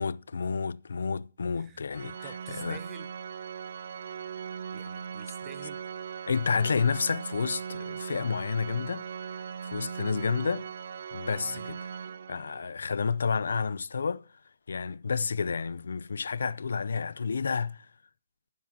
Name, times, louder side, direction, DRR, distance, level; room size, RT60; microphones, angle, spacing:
voice 1, 0.0-2.8 6.3-9.1 9.6-10.7 11.1-11.9 12.3-14.2 14.7-17.9, left 5 dB, 90° left, 0.4 m, -30 dB
Organ, 1.9-12.7, right 7 dB, 55° right, 0.4 m, -39 dB
voice 2, 2.2-3.1 4.7-5.8 11.4-11.7, right 6 dB, 10° right, 0.7 m, -48 dB
18.5 x 7.2 x 2.8 m
hypercardioid pair, 175°, 0 cm